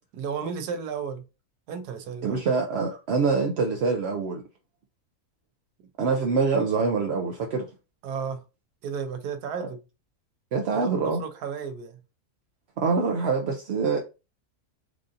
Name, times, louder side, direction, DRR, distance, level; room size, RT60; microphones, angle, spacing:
voice 1, 0.1-1.3 1.7-2.4 8.0-8.4 8.8-9.8 10.7-12.0, right 6 dB, 85° right, 1.2 m, -33 dB
voice 2, 2.2-4.4 6.0-7.7 9.6-9.7 10.5-11.2 12.8-14.0, right 4 dB, 65° right, 0.6 m, -25 dB
4.7 x 2.6 x 2.5 m
omnidirectional pair, 1.6 m